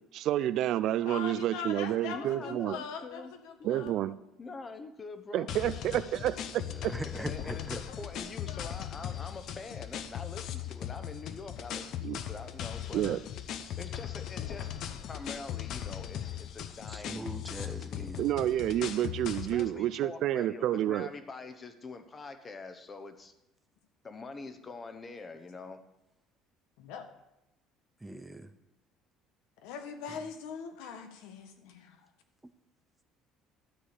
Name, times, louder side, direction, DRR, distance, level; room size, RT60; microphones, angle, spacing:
voice 1, 0.1-2.8 3.6-4.1 5.3-6.9 12.0-12.2 12.9-13.2 18.2-21.1, right 12 dB, 55° right, 16 dB, 0.4 m, -29 dB
voice 2, 1.0-3.9 7.9-8.0 8.5-8.7 26.8-27.1 29.6-32.0, left 6 dB, 90° left, 7 dB, 1.5 m, -41 dB
voice 3, 2.1-3.3 3.6-3.8 4.4-5.6 5.9-6.3 7.2-13.2 13.8-17.3 17.9-18.3 19.5-23.3 24.0-25.8, left 3 dB, 20° left, 9 dB, 1.0 m, -45 dB
sound 1, 5.5-19.7, left 10 dB, 50° left, 0.8 m, -39 dB
voice 4, 6.6-7.8 16.9-18.1 28.0-28.5, right 1 dB, 5° right, 10 dB, 0.6 m, -41 dB
12.5 x 4.8 x 8.4 m, 0.90 s
cardioid pair, 155°, 0 cm